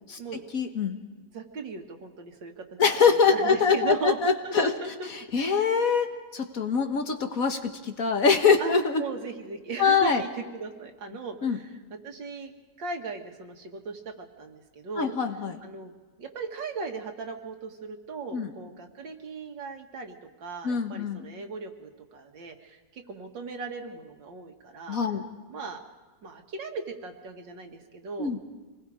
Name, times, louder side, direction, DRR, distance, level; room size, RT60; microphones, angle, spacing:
voice 1, 0.5-1.0 2.8-4.7 5.3-6.1 6.3-9.0 9.8-10.2 11.4-11.6 15.0-15.6 18.3-18.5 20.6-21.3 24.9-25.2 28.2-28.4, left 5 dB, 50° left, 5 dB, 1.7 m, -24 dB
voice 2, 1.3-2.8 3.1-5.1 5.4-5.6 8.6-8.7 9.0-15.1 15.6-15.9 16.2-20.2 20.4-25.0 25.5-25.8 26.2-28.4, right 4 dB, 90° right, 4 dB, 2.4 m, -38 dB
26.5 x 20.5 x 4.9 m, 1.3 s
omnidirectional pair, 2.0 m